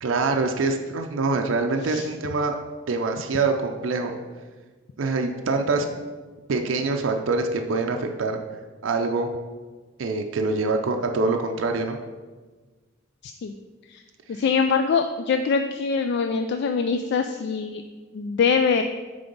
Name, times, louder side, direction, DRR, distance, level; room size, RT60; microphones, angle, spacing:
voice 1, 0.0-2.5 2.9-4.1 5.0-5.9 6.5-8.4 8.8-9.3 10.0-12.0, right 3 dB, 75° right, 4 dB, 0.5 m, -24 dB
voice 2, 13.2-13.5 13.9-14.0 14.3-17.8 18.1-18.8, left 5 dB, 55° left, 7 dB, 0.3 m, -23 dB
7.7 x 3.4 x 5.2 m, 1.4 s
head